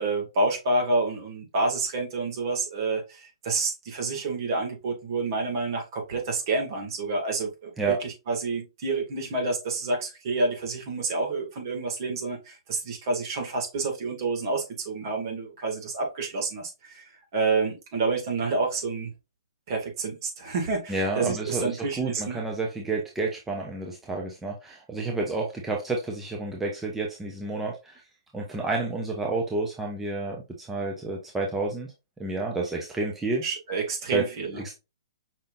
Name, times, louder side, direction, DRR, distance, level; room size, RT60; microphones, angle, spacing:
voice 1, 0.0-7.7 8.0-17.0 17.3-19.1 19.7-22.4 33.4-34.6, right 3 dB, 50° right, 2.1 m, -28 dB
voice 2, 20.9-28.0 28.3-31.9 32.2-33.4 34.1-34.2 34.5-34.7, right 3 dB, 10° right, 0.8 m, -30 dB
5.6 x 3.6 x 2.6 m
hypercardioid pair, 135°, 3 cm